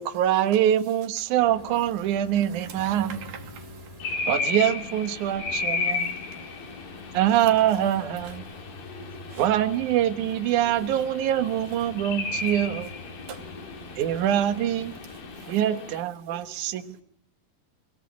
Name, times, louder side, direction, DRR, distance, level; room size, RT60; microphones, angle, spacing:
voice 1, 0.0-3.2 4.3-6.1 7.1-8.4 9.4-12.9 14.0-14.9 15.5-17.0, right 11 dB, 60° right, 9 dB, 2.6 m, -24 dB
sound 1, 1.4-15.5, left 2 dB, 45° left, 0.4 m, -45 dB
voice 2, 2.5-4.3 6.2-6.8 7.7-7.8 8.2-8.9 9.3-9.5 12.4-12.5 13.2-13.4 15.1-15.6, right 7 dB, 80° right, 6 dB, 4.4 m, -45 dB
sound 2, 4.0-16.0, left 4 dB, 65° left, 4.7 m, -34 dB
voice 3, 6.0-6.7 8.8-9.4 10.6-11.0 13.3-13.8 15.6-17.0, left 4 dB, 80° left, 8 dB, 7.2 m, -50 dB
24.0 x 17.5 x 8.7 m, 0.71 s
omnidirectional pair, 4.4 m